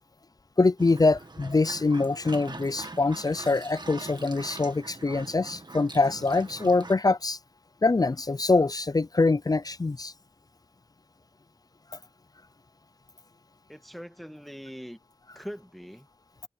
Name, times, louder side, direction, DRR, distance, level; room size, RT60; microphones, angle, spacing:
voice 1, 0.6-7.4 7.8-10.1, left 3 dB, 40° left, 0.5 m, -24 dB
sound 1, 0.8-6.9, right 2 dB, 45° right, 1.8 m, -43 dB
voice 2, 13.7-15.0 15.4-16.1, equal, ahead, 1.8 m, -42 dB
wide cardioid pair, 60°, 10 cm